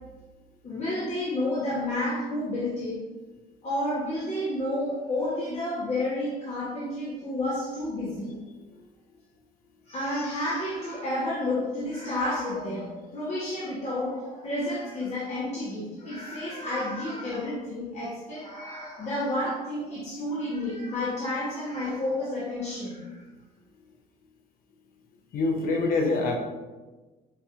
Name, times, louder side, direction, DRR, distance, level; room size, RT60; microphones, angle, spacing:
voice 1, 0.6-3.1 3.6-8.4 9.9-23.2, left 1 dB, 40° left, -8 dB, 1.0 m, -30 dB
voice 2, 25.3-26.4, left 3 dB, 60° left, 2 dB, 0.6 m, -25 dB
5.2 x 2.8 x 2.4 m, 1.2 s
cardioid pair, 110°, 17 cm